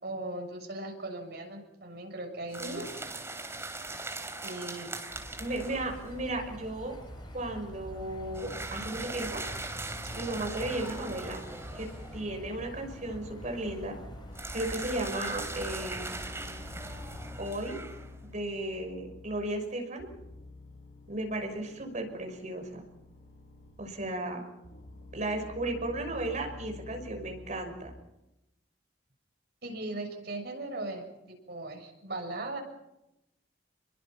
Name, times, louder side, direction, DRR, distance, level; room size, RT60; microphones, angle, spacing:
voice 1, 0.0-2.9 4.2-4.9 29.6-32.6, right 2 dB, 60° right, 3 dB, 6.9 m, -38 dB
sound 1, 2.5-6.1 8.3-12.2 14.3-18.3, right 2 dB, 15° right, 3.3 m, -40 dB
sound 2, 5.1-17.3, equal, 25° left, 5.4 m, -45 dB
voice 2, 5.4-7.0 7.3-9.4 10.1-11.4 11.7-14.0 14.5-16.1 17.4-17.8 18.2-20.1 21.1-22.8 23.8-24.4 25.1-27.9, right 1 dB, 45° right, 3 dB, 6.0 m, -35 dB
sound 3, 9.0-11.1 11.7-19.6 20.0-24.1 24.6-27.9, left 2 dB, 70° left, 6.9 m, -49 dB
29.0 x 22.5 x 5.9 m, 0.90 s
head